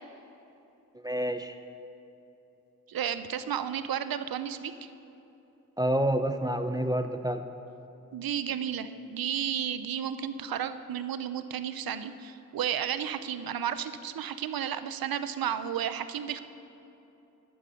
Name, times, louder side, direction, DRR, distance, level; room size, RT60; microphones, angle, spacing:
voice 1, 0.9-1.6 5.8-7.4, right 1 dB, 10° right, 7 dB, 0.7 m, -28 dB
voice 2, 2.9-4.9 8.1-16.4, right 9 dB, 85° right, 11 dB, 0.7 m, -33 dB
11.5 x 11.5 x 6.9 m, 3.0 s
cardioid pair, 50°, 35 cm